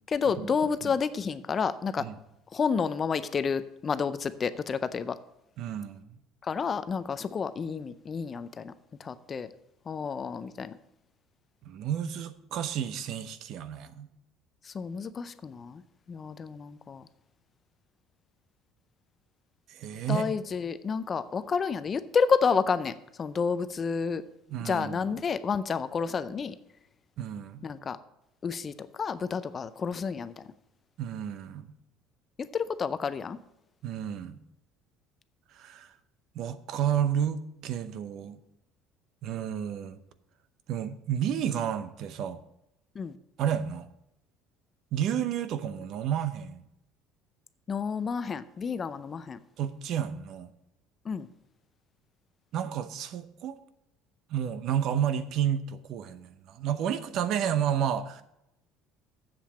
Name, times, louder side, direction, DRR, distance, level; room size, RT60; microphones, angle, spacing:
voice 1, 0.1-2.0 2.5-5.2 6.4-8.7 9.0-9.5 9.9-10.8 14.7-15.8 16.1-17.0 20.1-24.2 24.6-26.6 27.6-28.0 28.4-30.4 32.4-33.4 43.0-43.2 47.7-49.4 51.1-51.3, left 6 dB, 30° left, 13 dB, 0.4 m, -30 dB
voice 2, 5.6-6.2 11.6-14.1 19.7-20.3 24.5-25.2 27.2-27.7 31.0-31.7 33.8-34.4 35.5-35.9 36.3-38.4 39.2-40.0 40.7-42.4 43.4-43.9 44.9-46.6 49.6-50.5 52.5-53.6 54.3-58.2, right 9 dB, 55° right, 12 dB, 0.7 m, -31 dB
7.6 x 7.2 x 6.1 m, 0.84 s
cardioid pair, 140°, 0 cm